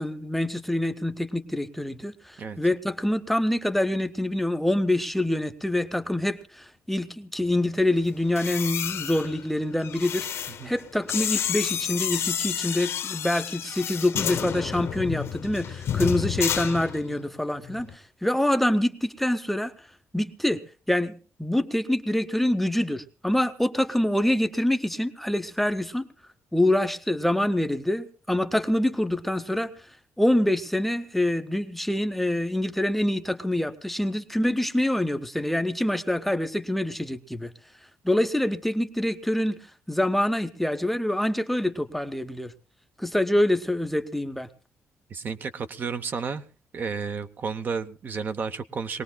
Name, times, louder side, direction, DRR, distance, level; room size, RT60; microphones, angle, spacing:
voice 1, 0.0-19.7 20.1-26.0 26.5-29.7 30.2-37.5 38.0-39.6 39.9-42.5 43.0-44.5, left 1 dB, 5° left, 0.6 m, -26 dB
sound 1, 8.2-17.3 17.6-17.9, left 9 dB, 60° left, 1.0 m, -30 dB
voice 2, 45.1-46.4 46.7-49.0, right 5 dB, 40° right, 0.7 m, -32 dB
22.5 x 18.5 x 2.2 m
cardioid pair, 165°, 5 cm